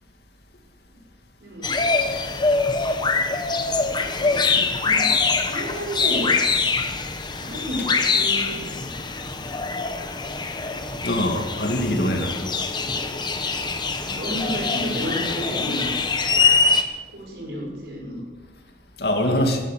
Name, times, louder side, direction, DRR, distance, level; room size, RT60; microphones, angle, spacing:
sound 1, 1.6-16.8, left 4 dB, 25° left, 1.1 m, -24 dB
voice 1, 3.9-5.1 5.4-6.3 7.5-8.8 13.9-15.9 17.1-18.2, equal, 70° right, -2 dB, 6.0 m, -32 dB
voice 2, 11.0-12.5 19.0-19.6, left 1 dB, 65° left, 4 dB, 2.4 m, -23 dB
16.0 x 11.0 x 7.5 m, 1.3 s
head